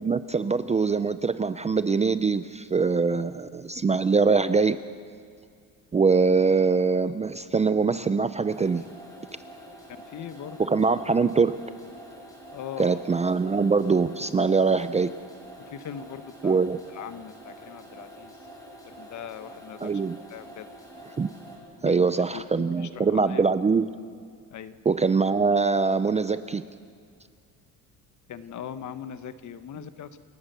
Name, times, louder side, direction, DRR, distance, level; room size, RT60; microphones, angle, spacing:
voice 1, 0.0-4.8 5.9-8.9 10.6-11.6 12.8-15.2 16.4-16.8 19.8-20.2 21.2-21.3 21.8-23.9 24.9-26.6, right 4 dB, 20° right, 12 dB, 0.5 m, -23 dB
sound 1, 8.5-21.6, right 1 dB, 10° left, 7.0 m, -46 dB
voice 2, 10.1-10.8 12.5-13.0 15.6-16.7 16.9-18.4 18.8-19.9 20.3-20.6 21.8-23.5 24.5-24.8 28.3-30.1, left 9 dB, 50° left, 11 dB, 1.2 m, -40 dB
29.5 x 17.0 x 6.9 m, 2.2 s
cardioid pair, 135°, 38 cm